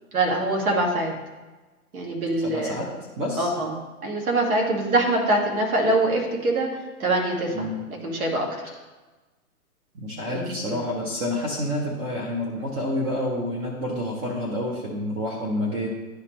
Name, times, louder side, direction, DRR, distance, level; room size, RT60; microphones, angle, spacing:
voice 1, 0.1-1.1 1.9-2.8 3.4-3.7 4.0-6.7 7.0-7.5 7.9-8.7 10.3-10.8, right 2 dB, 70° right, -1 dB, 2.0 m, -24 dB
voice 2, 2.4-2.9 3.2-3.5 7.5-7.8 9.9-15.9, left 1 dB, 25° right, -1 dB, 0.9 m, -28 dB
11.5 x 4.1 x 3.1 m, 1.2 s
hypercardioid pair, 125°, 44 cm